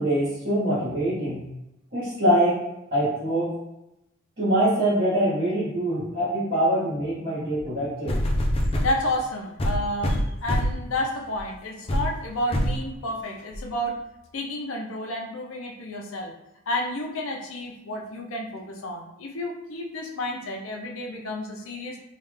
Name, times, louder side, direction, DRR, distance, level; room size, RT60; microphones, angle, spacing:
voice 1, 0.0-1.4 1.9-2.6 2.9-3.5 4.4-8.1, right 1 dB, 50° right, -10 dB, 1.4 m, -24 dB
sound 1, 7.6-7.7 8.1-9.0 9.6-10.9 11.4-11.5 11.9-12.1 12.5-12.8 13.5-13.6, equal, 30° left, 0.4 m, -24 dB
voice 2, 8.5-14.0 14.3-16.3 16.7-22.0, left 1 dB, 80° left, 1 dB, 0.6 m, -31 dB
3.2 x 2.4 x 3.2 m, 0.89 s
head